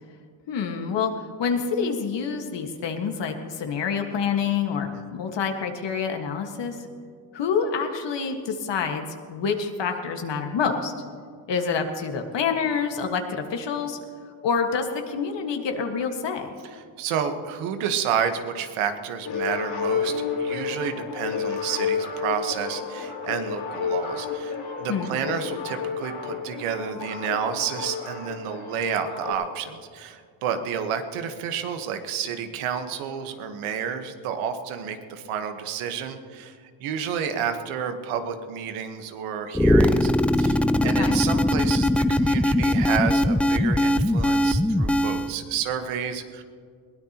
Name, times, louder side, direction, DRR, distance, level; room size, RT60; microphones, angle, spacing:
voice 1, 0.5-6.8 7.3-10.9 11.5-14.0 14.4-16.5 24.9-25.1 40.8-41.2, left 6 dB, 60° left, 4 dB, 1.7 m, -27 dB
voice 2, 17.0-40.1 40.4-46.4, right 7 dB, 90° right, 7 dB, 1.4 m, -30 dB
sound 1, 19.2-29.3, left 6 dB, 75° left, 4.3 m, -31 dB
sound 2, 39.5-45.3, left 1 dB, 5° left, 0.3 m, -21 dB
21.5 x 17.0 x 3.0 m, 2.1 s
cardioid pair, 85°, 49 cm